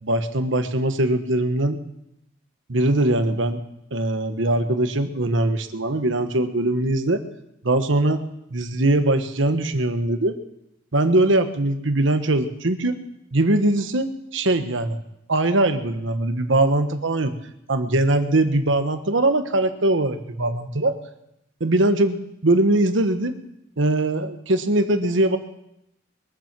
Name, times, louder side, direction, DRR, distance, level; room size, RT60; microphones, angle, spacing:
voice 1, 0.0-1.8 2.7-3.6 3.9-7.2 7.6-8.2 8.5-10.4 10.9-13.0 13.3-15.0 15.3-17.3 17.7-21.0 21.6-23.3 23.8-25.4, right 2 dB, 80° right, 9 dB, 1.2 m, -21 dB
22.0 x 7.5 x 7.5 m, 0.83 s
head